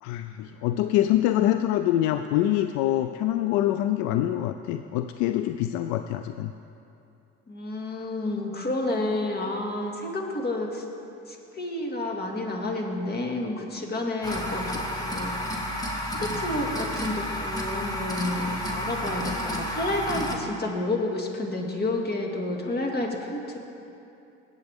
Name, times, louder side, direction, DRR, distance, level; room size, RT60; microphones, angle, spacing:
voice 1, 0.0-6.5, left 13 dB, 75° left, 9 dB, 0.4 m, -25 dB
voice 2, 7.5-10.8 11.3-15.3 16.1-23.6, left 2 dB, 35° left, 1 dB, 2.1 m, -30 dB
sound 1, 14.2-20.4, equal, 15° left, 1.7 m, -31 dB
19.0 x 8.1 x 3.6 m, 2.7 s
supercardioid pair, 75°, 29 cm